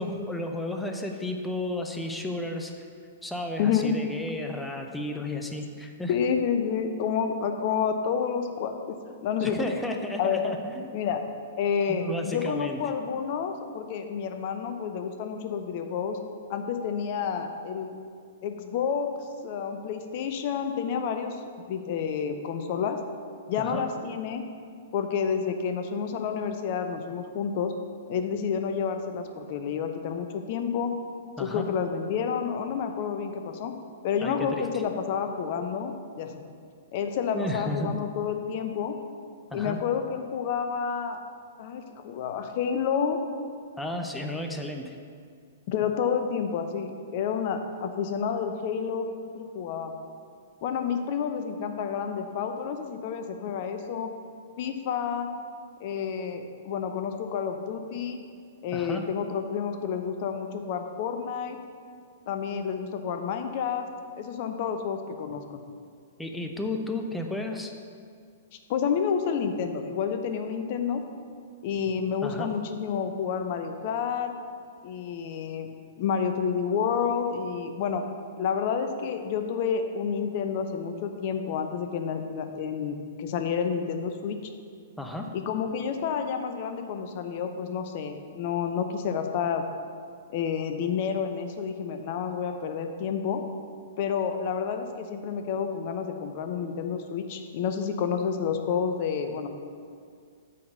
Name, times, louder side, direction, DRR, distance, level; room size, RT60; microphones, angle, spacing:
voice 1, 0.0-2.8 3.2-6.2 9.4-10.9 11.9-12.8 23.6-23.8 31.4-31.7 34.2-34.7 37.3-37.9 39.5-39.8 43.8-45.0 58.7-59.1 66.2-67.7 72.2-72.5 85.0-85.3, left 1 dB, 5° left, 3 dB, 0.7 m, -33 dB
voice 2, 3.6-3.9 6.1-9.6 10.2-10.4 10.9-11.2 11.6-16.2 16.5-18.0 18.4-19.1 19.4-23.0 23.5-24.4 24.9-27.7 28.1-30.9 31.4-33.7 34.0-36.4 36.9-39.0 39.5-41.2 41.6-43.2 45.7-49.9 50.6-54.1 54.6-55.3 55.8-58.2 58.6-61.6 62.3-63.9 64.1-65.6 68.5-71.0 71.6-74.4 74.8-75.7 76.0-78.1 78.4-84.4 85.3-89.6 90.3-93.4 94.0-99.5, left 7 dB, 40° left, 7 dB, 0.7 m, -29 dB
8.4 x 4.1 x 6.7 m, 2.2 s
figure-of-eight pair, 110°, 0 cm